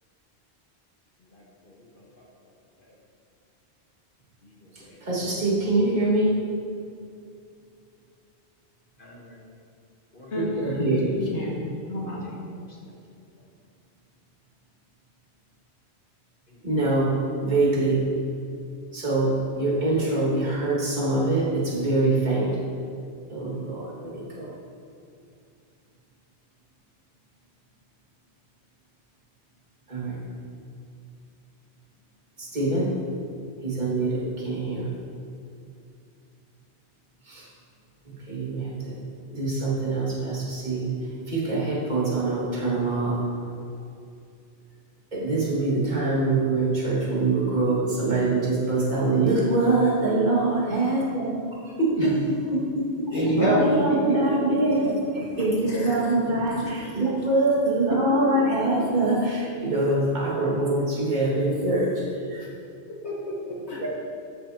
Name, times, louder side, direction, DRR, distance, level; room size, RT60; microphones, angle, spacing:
voice 1, 1.3-2.2 4.4-5.0 9.0-9.4 10.1-10.3 12.2-12.4, left 1 dB, 50° left, -3 dB, 1.4 m, -52 dB
voice 2, 5.0-6.4 10.4-11.1 16.6-17.1 17.4-18.0 18.9-22.5 23.3-24.5 29.9-30.2 32.4-32.9 33.6-34.9 37.3-37.5 38.1-38.9 39.3-40.9 41.2-43.2 45.1-51.4 51.8-61.9 62.3-62.4 63.8-63.9, right 2 dB, 40° right, -6 dB, 2.2 m, -24 dB
voice 3, 10.3-11.0 11.3-11.6 11.9-12.3 52.0-52.1 53.1-54.2 55.9-56.0 57.9-58.0 63.0-63.9, equal, 80° left, -5 dB, 2.2 m, -26 dB
13.0 x 8.3 x 2.9 m, 2.4 s
omnidirectional pair, 1.1 m